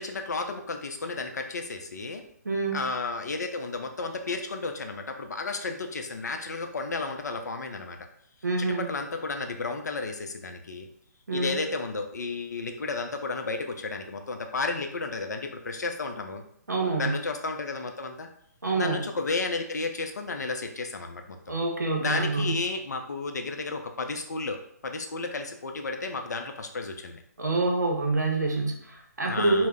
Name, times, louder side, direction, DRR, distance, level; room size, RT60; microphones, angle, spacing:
voice 1, 0.0-2.2 2.7-8.0 8.6-10.9 11.3-16.4 17.0-18.3 18.7-21.4 22.0-24.6 24.8-27.2 29.2-29.7, left 3 dB, 70° left, 5 dB, 0.4 m, -32 dB
voice 2, 2.4-2.8 8.4-8.9 11.3-11.6 16.7-17.2 18.6-19.0 21.5-22.6 27.4-29.7, right 3 dB, 80° right, 1 dB, 0.7 m, -27 dB
2.0 x 2.0 x 3.5 m, 0.68 s
figure-of-eight pair, 135°, 9 cm